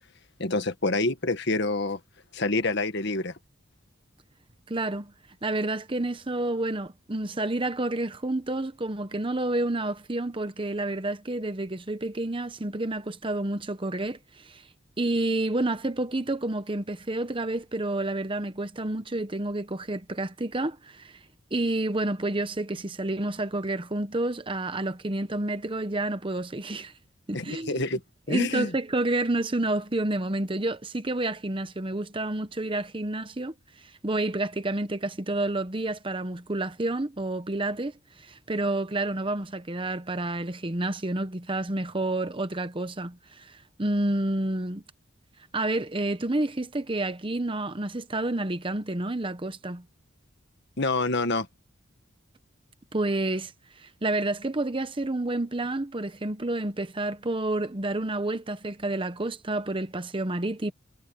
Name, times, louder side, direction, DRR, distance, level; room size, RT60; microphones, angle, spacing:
voice 1, 0.4-2.0 2.3-3.3 27.3-28.0 28.3-28.7 50.8-51.5, left 2 dB, 55° left, 1.7 m, -27 dB
voice 2, 4.7-5.1 5.4-14.6 15.0-21.2 21.5-26.9 27.3-27.8 28.3-33.5 33.8-44.8 45.5-49.8 52.9-53.5 53.8-60.7, right 2 dB, 25° right, 1.0 m, -29 dB
head